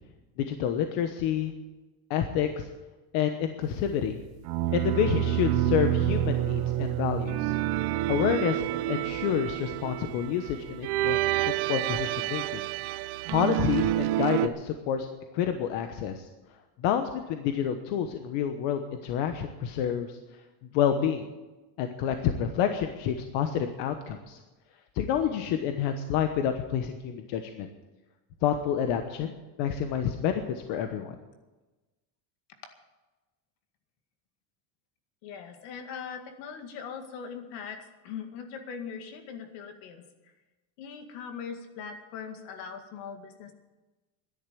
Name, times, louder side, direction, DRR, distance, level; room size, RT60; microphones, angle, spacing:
voice 1, 0.4-1.5 2.1-2.7 3.1-4.2 4.7-7.5 7.9-12.6 13.3-15.1 15.3-16.3 16.8-20.2 20.7-21.3 21.8-24.4 24.9-27.7 28.4-31.2, left 8 dB, 70° left, 7 dB, 1.2 m, -29 dB
sound 1, 4.4-14.5, right 14 dB, 55° right, 0.6 m, -28 dB
voice 2, 35.2-40.0 40.8-43.5, left 6 dB, 90° left, 6 dB, 2.2 m, -40 dB
12.5 x 10.5 x 8.5 m, 1.1 s
cardioid pair, 170°, 46 cm